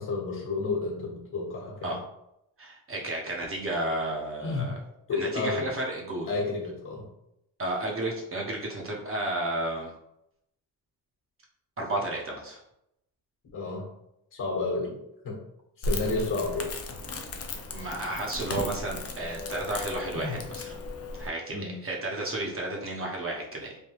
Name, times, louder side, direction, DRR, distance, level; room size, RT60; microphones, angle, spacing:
voice 1, 0.0-2.0 4.4-4.7 5.1-5.7 6.3-7.1 13.5-13.9 14.3-15.4 15.8-17.1 20.1-20.4 21.5-21.8, left 3 dB, 55° left, -2 dB, 1.1 m, -31 dB
voice 2, 2.6-4.7 5.1-6.3 7.6-9.9 11.8-12.6 17.7-20.7 21.2-23.8, right 2 dB, 35° right, -1 dB, 0.7 m, -32 dB
Crackle, 15.8-21.3, left 2 dB, 40° left, 0.5 m, -36 dB
3.3 x 2.2 x 3.0 m, 0.80 s
cardioid pair, 90°, 40 cm